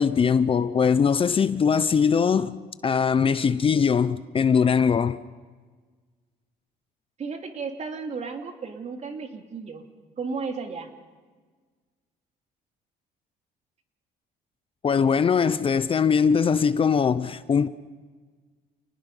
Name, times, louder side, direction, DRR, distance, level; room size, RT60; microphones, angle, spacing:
voice 1, 0.0-2.6 2.8-5.2 14.8-17.7, left 6 dB, 35° left, 0.7 m, -21 dB
voice 2, 7.2-9.8 10.2-10.9, right 4 dB, 40° right, 2.8 m, -34 dB
28.5 x 19.5 x 5.5 m
cardioid pair, 110°, 17 cm